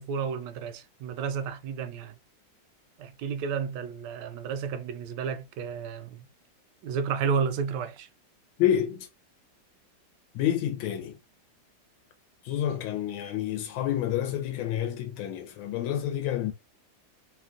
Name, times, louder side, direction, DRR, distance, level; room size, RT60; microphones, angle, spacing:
voice 1, 0.0-2.2 3.0-6.3 6.8-8.1, right 6 dB, 75° right, 1.1 m, -32 dB
voice 2, 8.6-9.1 10.3-11.2 12.4-16.5, left 11 dB, 90° left, 1.4 m, -28 dB
3.4 x 2.3 x 2.4 m
omnidirectional pair, 2.2 m